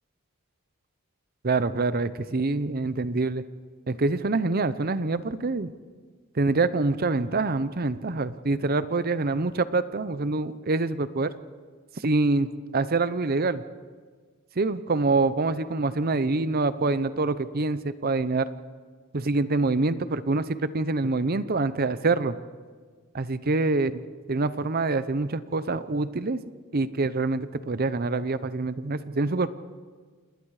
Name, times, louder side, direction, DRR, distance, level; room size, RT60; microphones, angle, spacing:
voice 1, 1.4-3.4 3.9-5.7 6.4-11.3 12.0-13.6 14.6-18.5 19.1-22.3 23.1-23.9 24.3-26.4 26.7-29.5, right 3 dB, 45° right, 14 dB, 0.7 m, -25 dB
28.5 x 20.5 x 4.9 m, 1.5 s
head